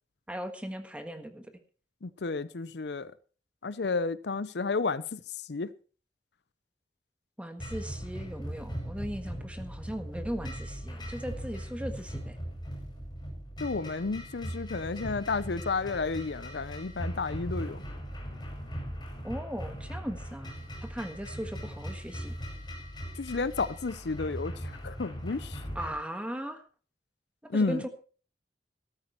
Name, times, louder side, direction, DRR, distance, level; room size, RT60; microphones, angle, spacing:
voice 1, 0.3-1.5 7.4-12.4 19.2-22.3 25.7-26.6 27.5-27.9, equal, 5° right, 1.5 m, -38 dB
voice 2, 2.0-3.1 3.6-5.2 5.5-5.7 13.6-17.8 23.2-25.6 27.5-27.8, left 4 dB, 70° left, 0.6 m, -32 dB
sound 1, 7.6-26.0, equal, 25° left, 5.8 m, -39 dB
14.0 x 13.0 x 4.5 m
head